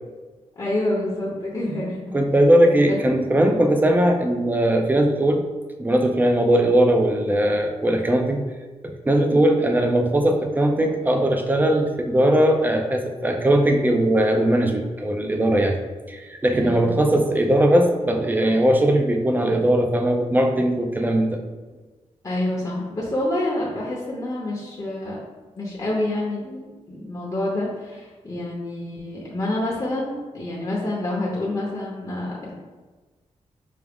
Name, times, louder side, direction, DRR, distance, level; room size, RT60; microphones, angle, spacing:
voice 1, 0.6-2.1 2.8-3.0 16.5-17.0 22.2-25.2 25.6-32.5, left 1 dB, 30° left, -5 dB, 0.7 m, -27 dB
voice 2, 2.1-5.4 5.8-8.4 8.8-15.8 16.1-21.4, right 1 dB, 15° right, 3 dB, 0.4 m, -19 dB
4.8 x 2.0 x 3.5 m, 1.3 s
wide cardioid pair, 100°, 12 cm